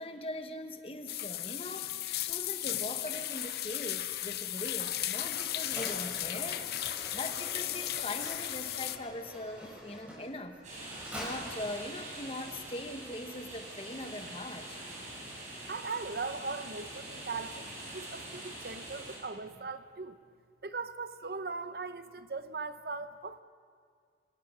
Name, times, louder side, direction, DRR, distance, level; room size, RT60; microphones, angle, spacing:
voice 1, 0.0-10.6 11.1-14.8, left 1 dB, 30° left, 7 dB, 1.2 m, -41 dB
sound 1, 1.1-9.0, left 13 dB, 60° left, 0.7 m, -35 dB
Mechanisms, 3.3-13.0, equal, 10° right, 7.9 m, -47 dB
sound 2, 10.6-19.2, right 1 dB, 45° right, 6.8 m, -44 dB
voice 2, 15.7-20.2 20.6-23.4, right 4 dB, 60° right, 12 dB, 0.8 m, -39 dB
25.5 x 18.0 x 6.3 m, 2.1 s
head